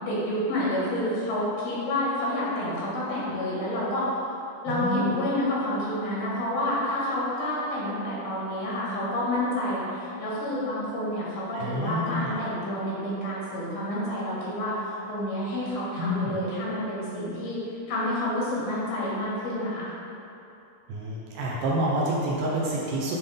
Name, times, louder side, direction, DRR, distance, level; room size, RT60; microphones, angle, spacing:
voice 1, 0.0-4.1 4.6-17.6 17.9-19.9, left 1 dB, 85° left, -7 dB, 3.4 m, -29 dB
voice 2, 4.7-5.1 11.5-12.3 16.0-16.4 20.9-23.2, equal, 75° right, -5 dB, 2.1 m, -28 dB
9.6 x 3.8 x 3.5 m, 2.8 s
omnidirectional pair, 4.1 m